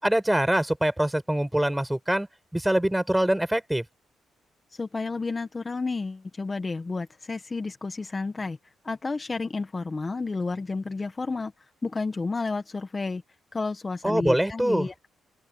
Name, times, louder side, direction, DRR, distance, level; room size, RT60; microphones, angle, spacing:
voice 1, 0.0-2.3 2.5-3.8 14.0-14.9, right 1 dB, 5° right, 5.9 m, -24 dB
voice 2, 4.7-13.2 13.5-15.1, left 3 dB, 30° left, 1.5 m, -31 dB
open air
cardioid pair, 75°, 0 cm